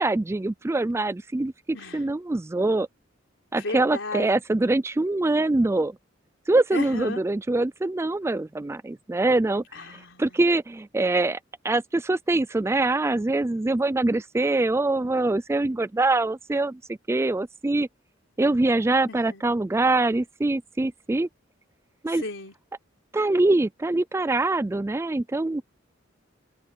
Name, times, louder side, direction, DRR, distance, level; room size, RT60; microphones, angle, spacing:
voice 1, 0.0-1.5 1.9-2.9 3.5-6.0 6.5-9.6 10.2-11.4 11.6-17.9 18.4-21.3 22.0-22.2 23.1-25.6, right 2 dB, 15° right, 0.3 m, -24 dB
voice 2, 3.5-4.3 6.7-7.2 9.7-10.4 19.1-19.4 22.1-22.5, left 2 dB, 75° left, 4.2 m, -35 dB
head